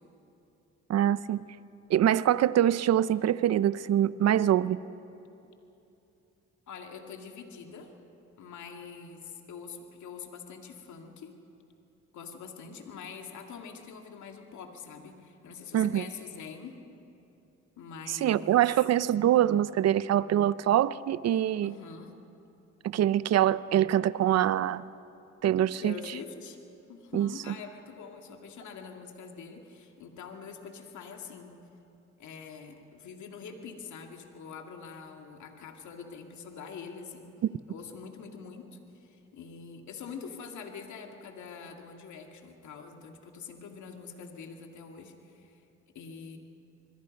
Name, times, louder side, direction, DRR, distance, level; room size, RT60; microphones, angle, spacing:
voice 1, 0.9-1.4 1.9-4.8 15.7-16.0 18.2-21.7 22.8-24.9 25.4-25.9 27.1-27.3, right 11 dB, 60° right, 0.6 m, -24 dB
voice 2, 6.7-7.9 8.4-11.3 12.1-16.7 17.8-18.8 21.6-22.2 25.8-26.6 26.9-31.6 32.2-37.3 37.7-45.6 45.9-46.4, left 6 dB, 70° left, 2.3 m, -45 dB
27.0 x 21.5 x 5.3 m
cardioid pair, 90°, 30 cm